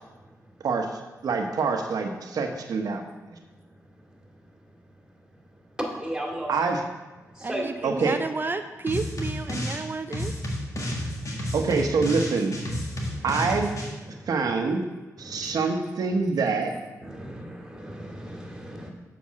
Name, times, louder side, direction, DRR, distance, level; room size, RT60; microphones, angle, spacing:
voice 1, 0.6-3.0 6.5-6.8 7.8-8.2 11.5-12.5 13.2-13.7 14.3-14.8 15.2-16.7, right 4 dB, 75° right, 4 dB, 1.0 m, -25 dB
voice 2, 3.5-4.4 5.6-6.5 7.2-8.0 10.5-11.6 12.9-13.2 14.1-14.3 15.2-15.6 16.1-16.2 16.7-18.9, right 1 dB, 10° right, -1 dB, 2.4 m, -37 dB
voice 3, 7.4-10.3, right 3 dB, 35° right, 8 dB, 0.5 m, -31 dB
sound 1, 8.9-9.8 10.1-13.9, equal, 55° left, 1.7 m, -31 dB
7.4 x 5.1 x 6.3 m, 1.2 s
cardioid pair, 65°, 6 cm